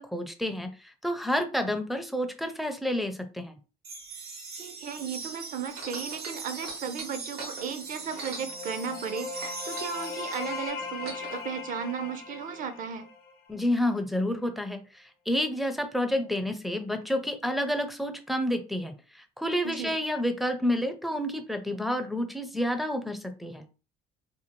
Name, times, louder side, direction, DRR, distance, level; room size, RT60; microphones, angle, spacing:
voice 1, 0.0-3.6 13.5-23.6, left 1 dB, ahead, 6 dB, 0.4 m, -29 dB
sound 1, 3.8-10.7, right 4 dB, 70° right, 0.9 m, -41 dB
voice 2, 4.6-13.0 19.6-20.0, right 6 dB, 55° right, 9 dB, 0.5 m, -35 dB
sound 2, 5.7-9.1 9.4-11.4 12.2-12.3, right 3 dB, 85° right, 1.2 m, -42 dB
FX Light, 8.0-13.7, left 4 dB, 85° left, 0.7 m, -39 dB
2.7 x 2.3 x 2.9 m, 0.34 s
cardioid pair, 110°, 17 cm